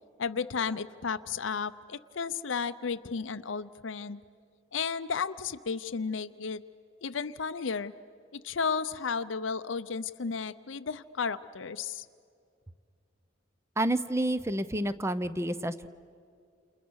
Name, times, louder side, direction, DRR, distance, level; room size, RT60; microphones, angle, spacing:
voice 1, 0.2-4.2 4.7-6.6 7.0-7.9 8.3-12.1, left 5 dB, 70° left, 11 dB, 0.6 m, -33 dB
voice 2, 13.8-15.9, right 1 dB, 15° right, 14 dB, 0.7 m, -29 dB
29.5 x 29.0 x 6.4 m, 2.3 s
head